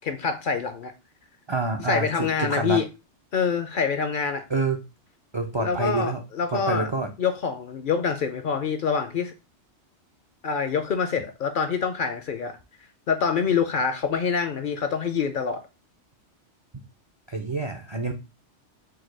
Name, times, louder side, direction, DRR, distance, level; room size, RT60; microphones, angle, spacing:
voice 1, 0.0-0.9 1.8-2.9 3.3-4.4 5.6-6.9 7.2-9.3 10.4-12.6 13.1-15.6, left 6 dB, 55° left, 0.6 m, -26 dB
voice 2, 1.5-2.8 4.5-4.8 5.3-6.2 6.5-7.1 17.3-18.1, right 3 dB, 45° right, 0.3 m, -27 dB
4.7 x 2.2 x 4.5 m
omnidirectional pair, 1.2 m